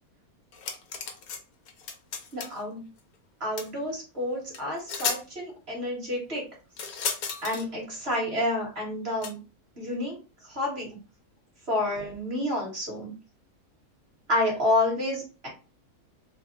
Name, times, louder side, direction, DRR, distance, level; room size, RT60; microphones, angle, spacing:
sound 1, 0.5-1.4 1.7-2.6 3.6-3.7 4.5-4.6 4.9-5.2 6.8-7.7 9.2-9.3, left 6 dB, 70° left, 1.1 m, -33 dB
voice 1, 2.3-2.8 3.4-6.4 7.4-9.4 9.8-10.2 10.5-11.0 11.7-13.1 14.3-15.5, left 1 dB, 40° right, -2 dB, 2.0 m, -29 dB
3.5 x 2.3 x 3.9 m, 0.32 s
omnidirectional pair, 1.6 m